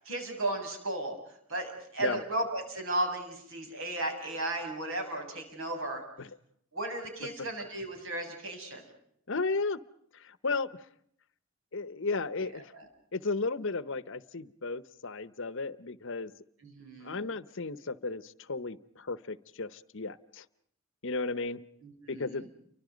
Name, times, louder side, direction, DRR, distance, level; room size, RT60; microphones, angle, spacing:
voice 1, 0.0-1.1 1.5-6.0 6.7-8.8 12.7-12.9 16.6-17.2 21.8-22.5, right 2 dB, 65° right, 4 dB, 7.4 m, -35 dB
voice 2, 9.3-9.8 10.1-10.7 11.7-12.7 13.1-16.3 17.0-20.4 21.0-21.6 22.1-22.4, left 3 dB, 60° left, 16 dB, 0.9 m, -34 dB
30.0 x 24.5 x 5.2 m, 0.68 s
head